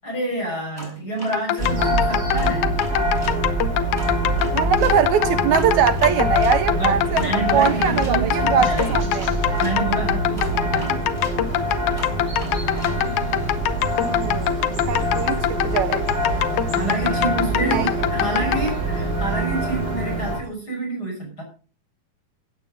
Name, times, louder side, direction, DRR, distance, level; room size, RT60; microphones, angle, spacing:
voice 1, 0.0-2.8 6.7-9.0 9.6-11.3 16.7-21.4, right 2 dB, 25° left, 6.3 m, -28 dB
sound 1, 0.8-3.4 4.0-9.8 10.4-13.6, equal, 5° left, 6.7 m, -40 dB
sound 2, 1.3-18.7, left 12 dB, 70° left, 2.0 m, -24 dB
sound 3, 1.6-20.4, right 1 dB, 15° right, 3.7 m, -24 dB
voice 2, 4.5-9.3 14.0-16.0 17.6-17.8, right 9 dB, 75° right, 1.7 m, -22 dB
16.0 x 8.6 x 5.2 m
omnidirectional pair, 4.1 m